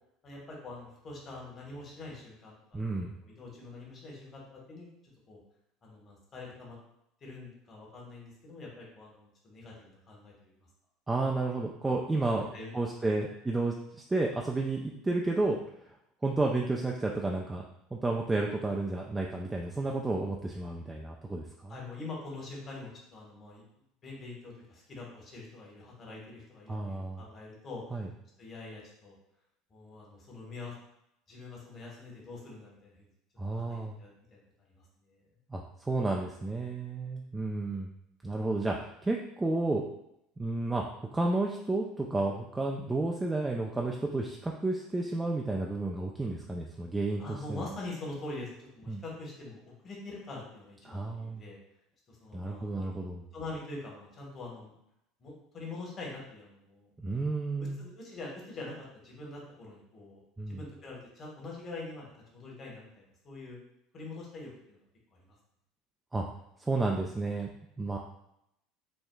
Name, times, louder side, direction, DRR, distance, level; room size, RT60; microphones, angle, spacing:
voice 1, 0.2-4.9 5.3-5.4 5.8-6.8 7.2-10.7 12.3-12.7 13.0-13.2 21.7-23.6 24.0-27.8 28.4-29.1 29.7-30.7 31.3-33.1 33.6-34.4 34.7-35.2 47.2-51.6 52.1-52.9 53.3-54.7 55.2-56.9 57.6-60.2 60.5-63.6 63.9-64.8 65.2-65.3, left 2 dB, 35° left, -3 dB, 1.3 m, -44 dB
voice 2, 2.7-3.2 11.1-12.4 12.7-13.7 14.1-15.6 16.2-17.6 17.9-21.8 26.7-27.2 27.9-28.1 33.4-33.9 35.5-37.9 38.2-39.8 40.4-40.8 41.1-47.2 47.5-47.7 48.9-49.0 50.8-51.4 52.3-53.2 57.0-57.8 60.4-60.6 66.1-66.2 66.6-67.5 67.8-68.0, right 2 dB, 15° right, 0 dB, 0.4 m, -31 dB
4.4 x 2.3 x 2.2 m, 0.79 s
hypercardioid pair, 80°, 0 cm